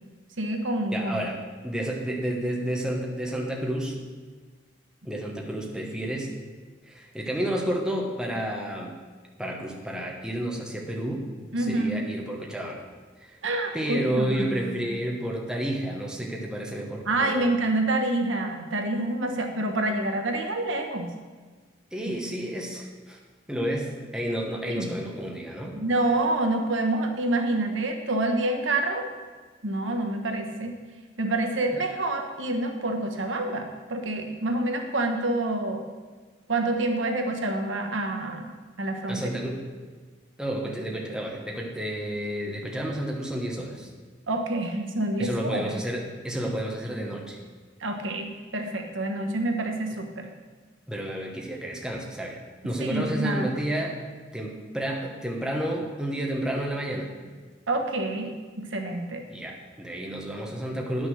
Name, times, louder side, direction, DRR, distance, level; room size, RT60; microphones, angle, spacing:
voice 1, 0.4-1.2 11.5-12.1 13.4-14.8 17.0-21.1 24.7-25.0 25.7-29.1 29.6-30.7 31.2-35.8 36.5-38.5 38.8-39.3 44.3-45.8 47.8-50.3 52.8-53.6 57.7-59.2, right 2 dB, 80° right, 3 dB, 1.2 m, -27 dB
voice 2, 0.9-4.0 5.0-6.3 6.9-8.9 9.4-11.2 11.6-12.8 13.2-13.4 13.7-17.5 21.9-23.2 23.5-25.8 39.1-39.6 40.4-43.9 45.2-47.4 50.9-54.0 54.3-57.1 59.3-61.1, right 1 dB, 5° right, -1 dB, 1.1 m, -31 dB
9.9 x 6.3 x 6.4 m, 1.4 s
head